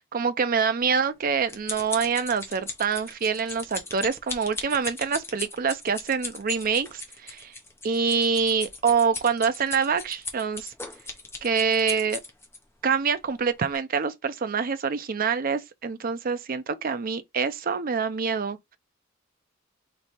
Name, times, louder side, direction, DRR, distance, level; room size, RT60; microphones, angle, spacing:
voice 1, 0.0-7.5 7.8-10.7 11.4-12.2 12.8-18.8, right 5 dB, 45° right, 0.5 m, -26 dB
sound 1, 0.9-12.6 13.2-13.4 13.7-13.8, left 3 dB, 10° left, 0.9 m, -37 dB
3.2 x 3.2 x 4.2 m
head